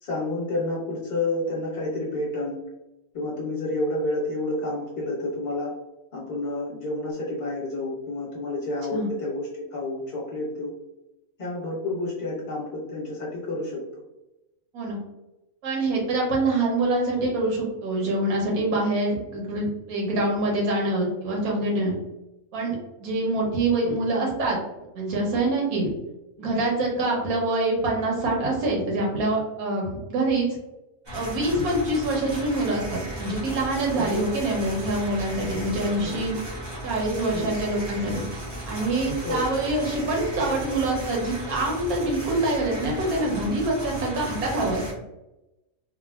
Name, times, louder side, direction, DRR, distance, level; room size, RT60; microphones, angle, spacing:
voice 1, 0.0-2.6 3.1-5.7 6.1-10.7 11.4-13.8 33.9-34.1 36.0-36.1 37.3-37.5 39.2-39.4, left 2 dB, 40° left, -6 dB, 1.2 m, -29 dB
voice 2, 15.6-22.0 22.5-24.6 24.9-25.9 26.4-30.5 31.1-36.4 36.8-38.3 38.7-44.8, right 2 dB, 85° right, -2 dB, 1.3 m, -25 dB
sound 1, 31.1-44.9, right 1 dB, 25° right, 0.6 m, -35 dB
3.3 x 2.2 x 2.3 m, 0.95 s
omnidirectional pair, 1.5 m